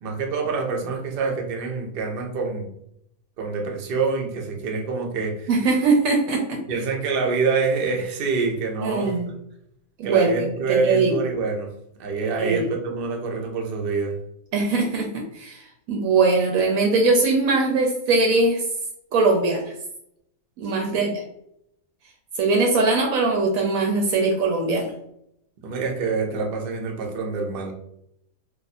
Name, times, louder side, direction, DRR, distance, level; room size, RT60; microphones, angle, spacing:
voice 1, 0.0-2.7 3.4-5.5 6.7-9.1 10.0-11.7 12.0-14.2 20.9-21.1 25.6-27.7, right 4 dB, 55° right, 2 dB, 0.7 m, -26 dB
voice 2, 5.5-6.6 8.8-9.3 10.0-11.2 12.4-12.6 14.5-18.6 19.1-19.7 20.6-21.2 22.4-24.9, right 3 dB, 75° right, 1 dB, 1.0 m, -21 dB
2.5 x 2.4 x 4.1 m, 0.76 s
omnidirectional pair, 1.5 m